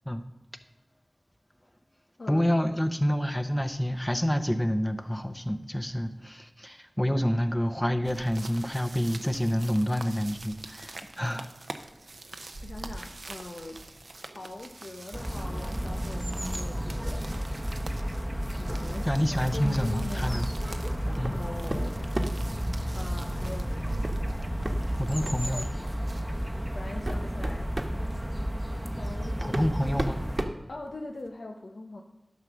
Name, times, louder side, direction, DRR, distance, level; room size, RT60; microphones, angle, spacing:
voice 1, 2.3-11.5 19.0-20.5 21.2-21.4 25.0-25.7 29.4-30.2, equal, 15° left, 7 dB, 0.8 m, -28 dB
sound 1, 8.1-26.2, right 2 dB, 85° right, 0.7 m, -43 dB
voice 2, 12.6-13.8 14.3-17.2 18.6-20.4 21.1-22.1 22.9-24.1 25.4-26.0 26.5-27.7 29.0-29.7 30.7-32.0, left 2 dB, 85° left, 1 dB, 0.8 m, -42 dB
sound 2, 15.1-30.4, equal, 10° right, 0.9 m, -32 dB
sound 3, 21.2-21.4 21.7-22.5 24.0-24.2 24.6-24.8 25.2-25.4 26.3-26.4 26.8-28.0 29.0-29.1 29.5-31.3, right 1 dB, 50° right, 1.2 m, -33 dB
11.0 x 5.9 x 6.1 m, 0.97 s
wide cardioid pair, 45°, 0 cm